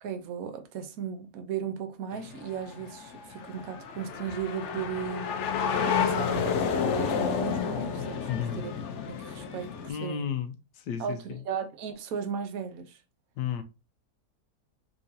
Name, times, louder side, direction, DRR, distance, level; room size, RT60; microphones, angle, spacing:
voice 1, 0.0-5.3 6.0-8.3 8.5-8.7 9.1-9.7 10.0-10.3 11.0-13.0, right 7 dB, 65° right, 1.1 m, -36 dB
sound 1, 2.1-9.9, left 6 dB, 60° left, 0.8 m, -30 dB
voice 2, 8.3-8.6 9.9-11.4 13.4-13.6, left 8 dB, 90° left, 1.4 m, -33 dB
4.3 x 3.7 x 2.7 m
omnidirectional pair, 1.8 m